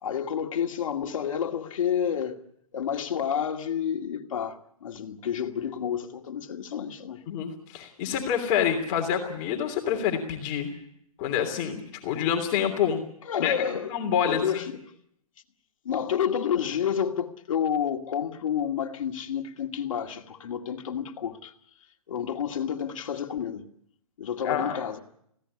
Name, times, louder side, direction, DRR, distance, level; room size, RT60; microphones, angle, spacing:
voice 1, 0.0-2.4 2.7-7.2 13.2-14.0 14.2-14.8 15.8-21.5 22.1-23.7 24.2-25.0, left 8 dB, 60° left, 2.2 m, -29 dB
voice 2, 7.3-10.7 11.2-13.0 13.4-13.6 13.9-14.6 24.4-24.8, left 8 dB, 30° left, 3.1 m, -27 dB
21.0 x 16.5 x 9.8 m
hypercardioid pair, 145°, 19 cm